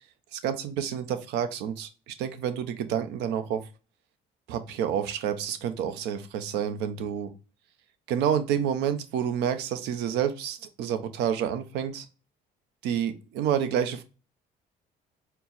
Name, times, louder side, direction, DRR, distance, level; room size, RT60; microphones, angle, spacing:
voice 1, 0.3-3.7 4.5-7.3 8.1-12.1 12.8-14.0, right 9 dB, 85° right, 0.6 m, -29 dB
4.4 x 2.0 x 3.9 m
cardioid pair, 110°, 17 cm